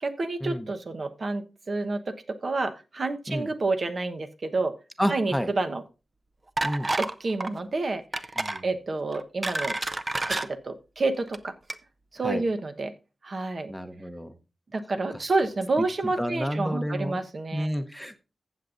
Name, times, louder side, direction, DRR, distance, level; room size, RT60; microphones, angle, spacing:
voice 1, 0.0-4.7 5.1-5.8 7.0-8.3 8.6-9.7 10.3-11.5 12.1-12.9 13.2-13.7 14.7-17.7, right 3 dB, 55° right, 7 dB, 1.1 m, -29 dB
voice 2, 5.0-5.5 6.6-6.9 8.4-8.6 12.2-12.4 13.7-14.3 16.2-17.2 17.5-18.2, equal, ahead, 8 dB, 1.0 m, -30 dB
sound 1, 6.6-7.1 7.4-7.6 8.1-8.6 9.1-10.5 11.2-11.4 11.7-11.8, right 2 dB, 35° right, 0.6 m, -29 dB
15.0 x 7.3 x 2.6 m, 0.30 s
wide cardioid pair, 75°, 0 cm